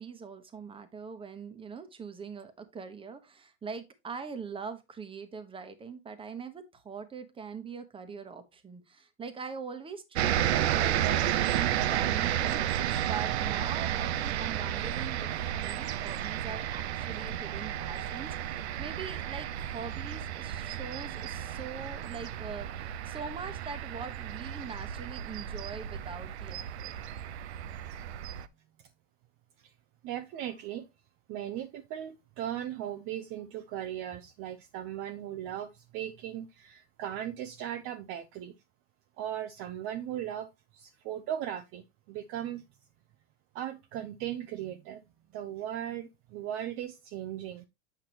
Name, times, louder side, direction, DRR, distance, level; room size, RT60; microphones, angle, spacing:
voice 1, 0.0-26.9, right 5 dB, 15° right, 1.1 m, -42 dB
sound 1, 10.1-28.5, right 11 dB, 85° right, 0.6 m, -32 dB
voice 2, 30.0-30.9 31.3-38.5 39.2-42.6 43.5-45.0 45.3-47.6, right 11 dB, 45° right, 0.6 m, -38 dB
8.0 x 5.7 x 2.9 m
supercardioid pair, 120°, 32 cm